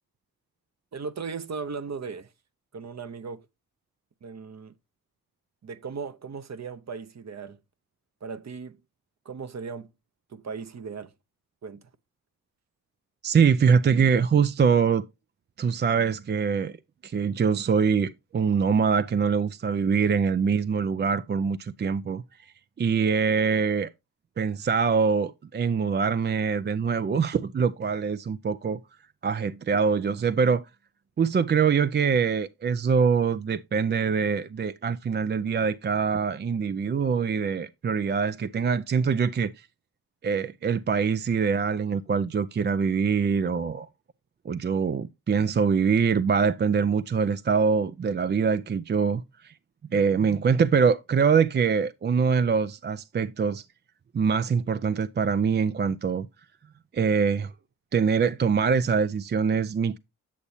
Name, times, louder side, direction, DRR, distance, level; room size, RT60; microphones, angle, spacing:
voice 1, 0.9-2.3 2.7-3.4 4.2-4.7 5.6-7.6 8.2-8.8 9.2-9.9 10.3-11.1 11.6-11.8, right 5 dB, 45° right, 0.8 m, -37 dB
voice 2, 13.2-15.1 15.6-16.8 17.0-22.5 22.8-23.9 24.4-28.8 29.2-30.6 31.2-39.7 40.2-43.9 44.5-49.5 49.9-53.6 54.1-56.3 56.9-57.5 57.9-60.0, right 6 dB, 30° right, 0.4 m, -24 dB
8.4 x 7.0 x 2.7 m
supercardioid pair, 45°, 38 cm